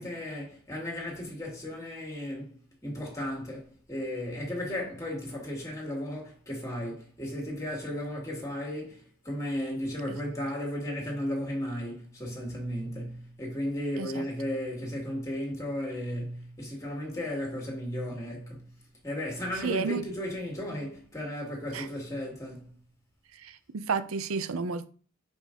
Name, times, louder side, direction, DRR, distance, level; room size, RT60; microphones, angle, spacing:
voice 1, 0.0-18.6 19.0-22.7, equal, 15° left, 2.0 m, -35 dB
voice 2, 19.6-20.0 21.7-21.8 23.7-24.9, right 5 dB, 85° right, 0.6 m, -31 dB
5.2 x 5.1 x 3.8 m
head